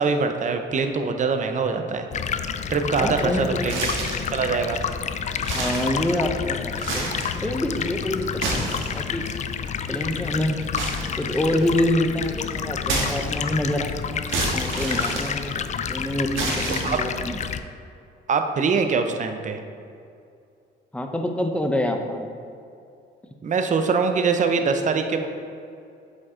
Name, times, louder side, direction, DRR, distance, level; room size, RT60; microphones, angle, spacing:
voice 1, 0.0-2.1 2.7-3.9 4.3-4.8 16.8-17.0 18.3-19.6 23.4-25.3, right 5 dB, 40° right, 6 dB, 0.6 m, -23 dB
Stream, 2.1-17.6, left 7 dB, 35° left, 0.4 m, -29 dB
voice 2, 2.9-3.6 5.5-7.1 7.4-9.3 9.9-10.6 11.2-14.1 14.5-17.4 20.9-22.3, left 1 dB, 5° left, 4 dB, 0.7 m, -26 dB
sound 1, 3.6-4.3 4.8-4.9 5.3-6.4 6.7-7.4 8.2-9.3 10.7-11.8 12.8-13.6 14.3-15.8 16.3-17.2, right 2 dB, 80° right, 1.5 m, -29 dB
7.9 x 5.2 x 3.7 m, 2.5 s
cardioid pair, 90°, 20 cm